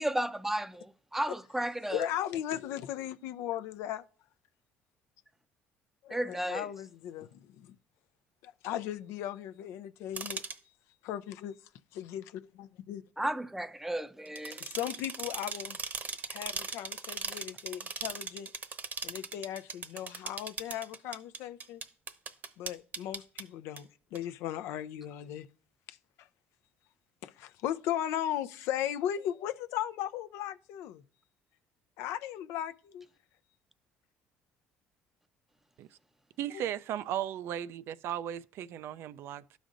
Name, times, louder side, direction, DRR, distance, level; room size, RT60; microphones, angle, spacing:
voice 1, 0.0-2.1 6.1-6.7 13.2-14.6 17.3-17.4, right 1 dB, 5° right, 0.5 m, -33 dB
voice 2, 1.9-4.0 6.0-7.7 8.4-10.4 11.0-11.6 11.9-13.0 14.6-15.8 16.3-18.5 19.0-21.8 22.6-25.5 25.9-26.0 27.2-31.0 32.0-33.0 36.5-36.6, left 11 dB, 75° left, 0.4 m, -37 dB
sound 1, 10.2-10.6 14.3-23.4 23.8-23.9 24.2-24.3, right 5 dB, 45° right, 0.9 m, -39 dB
voice 3, 36.4-39.6, right 11 dB, 65° right, 0.3 m, -36 dB
12.5 x 5.1 x 2.5 m
supercardioid pair, 70°, 5 cm